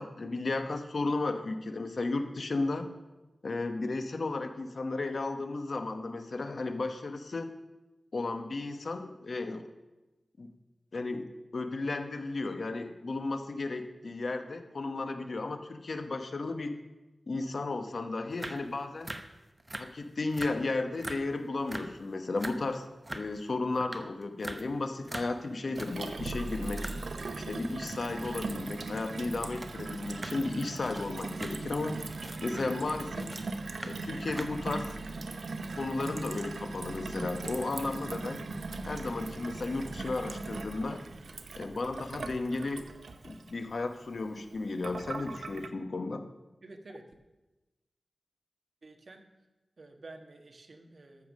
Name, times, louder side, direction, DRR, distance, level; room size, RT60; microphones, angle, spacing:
voice 1, 0.0-2.9 3.4-7.5 8.1-9.6 10.4-10.5 10.9-11.3 11.5-16.8 17.3-19.1 19.8-22.9 23.1-26.9 27.5-32.0 32.4-33.3 33.8-35.1 35.7-38.4 38.8-41.0 41.5-42.9 43.2-46.2, left 3 dB, 65° left, 8 dB, 1.1 m, -34 dB
sound 1, 18.3-18.7 19.0-20.0 20.3-20.7 20.9-21.4 21.6-22.0 22.3-22.6 23.0-23.4 23.8-26.1 26.5-27.3 28.3-28.4 28.9-29.0 29.2-33.5 33.8-34.0 34.3-34.5, right 1 dB, 25° right, 0.9 m, -43 dB
Gurgling / Water tap faucet / Sink (filling or washing), 25.8-45.7, right 3 dB, 80° right, 0.8 m, -39 dB
voice 2, 46.6-47.1 48.8-49.2 49.8-51.3, right 2 dB, 55° right, 5 dB, 1.4 m, -50 dB
13.5 x 7.2 x 6.4 m, 1.1 s
wide cardioid pair, 85°, 0 cm